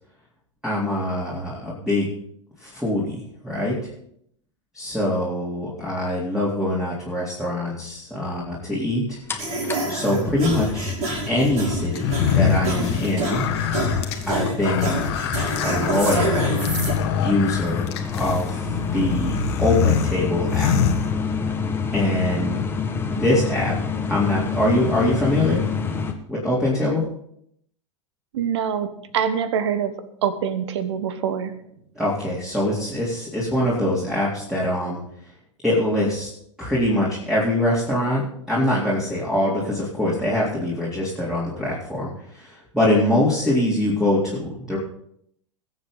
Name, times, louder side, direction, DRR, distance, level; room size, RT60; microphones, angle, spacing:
voice 1, 0.6-2.1 2.6-3.7 4.7-9.2 9.9-10.9 11.3-13.5 14.3-15.1 15.6-16.5 17.2-19.3 19.6-20.7 21.9-22.6 23.1-23.7 24.1-25.6 26.3-27.0 32.0-35.0 35.6-36.3 36.6-44.8, left 1 dB, 5° right, -6 dB, 3.8 m, -23 dB
sound 1, 9.3-26.1, left 6 dB, 15° left, 1.7 m, -29 dB
sound 2, 9.4-16.9, right 1 dB, 45° right, 5.7 m, -28 dB
sound 3, 11.9-21.6, left 7 dB, 55° left, 1.7 m, -25 dB
voice 2, 28.3-29.9 30.2-31.5, right 8 dB, 60° right, 12 dB, 1.4 m, -24 dB
21.0 x 8.0 x 4.0 m, 0.72 s
figure-of-eight pair, 90°, 16 cm